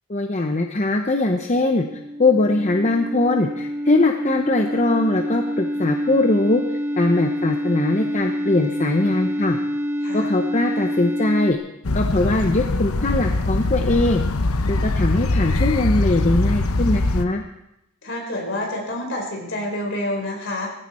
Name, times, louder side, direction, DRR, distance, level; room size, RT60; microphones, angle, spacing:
voice 1, 0.1-1.9 2.2-6.6 7.0-9.6 10.1-11.6 11.9-14.2 14.7-17.4, left 2 dB, 35° left, 4 dB, 0.8 m, -21 dB
sound 1, 1.3-11.5, equal, 10° right, 1.2 m, -27 dB
voice 2, 10.0-10.3 18.0-20.7, left 1 dB, 55° left, 0 dB, 4.5 m, -28 dB
sound 2, 11.8-17.3, left 2 dB, 85° left, 0.9 m, -22 dB
19.0 x 15.5 x 4.3 m, 0.87 s
head